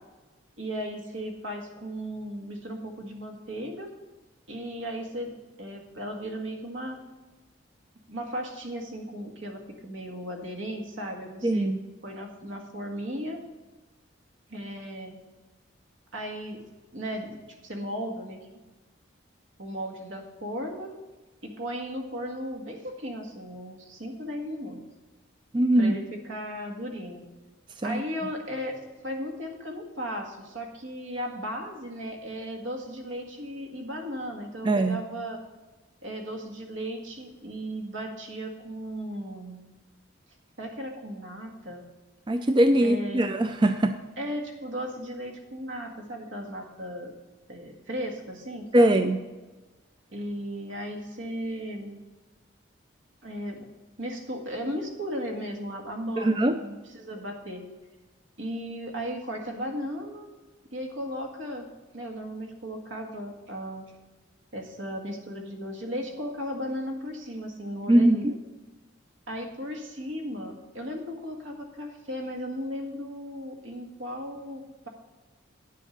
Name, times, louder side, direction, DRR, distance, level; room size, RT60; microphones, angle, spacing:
voice 1, 0.6-3.9 4.5-7.0 8.1-11.7 12.0-13.4 14.5-15.2 16.1-16.6 16.9-18.4 19.6-20.9 21.4-24.8 25.8-27.2 27.8-35.4 36.0-39.6 40.6-41.8 42.8-43.2 44.2-47.1 47.5-49.0 50.1-52.0 53.2-53.7 54.0-57.6 58.4-60.4 60.7-61.7 61.9-63.8 64.5-68.4 69.3-74.9, equal, 75° right, 2 dB, 1.8 m, -36 dB
voice 2, 11.4-11.8 25.5-26.0 27.8-28.0 34.6-35.0 42.3-43.9 48.7-49.2 56.2-56.6 67.9-68.3, right 1 dB, 25° right, 8 dB, 0.4 m, -21 dB
9.9 x 7.6 x 5.2 m, 1.2 s
head